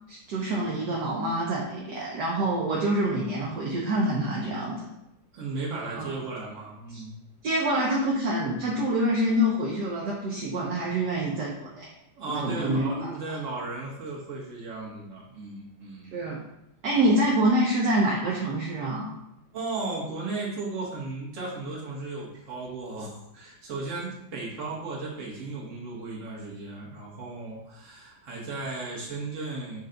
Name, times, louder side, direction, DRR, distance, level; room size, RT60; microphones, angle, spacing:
voice 1, 0.1-4.9 5.9-6.2 6.9-7.0 7.4-11.9 12.3-13.1 16.1-16.4 16.8-19.1, right 1 dB, 65° right, -4 dB, 1.2 m, -26 dB
voice 2, 5.3-7.1 12.2-16.1 19.5-29.8, right 3 dB, 45° right, -5 dB, 1.4 m, -35 dB
5.6 x 2.4 x 3.8 m, 0.84 s
omnidirectional pair, 2.1 m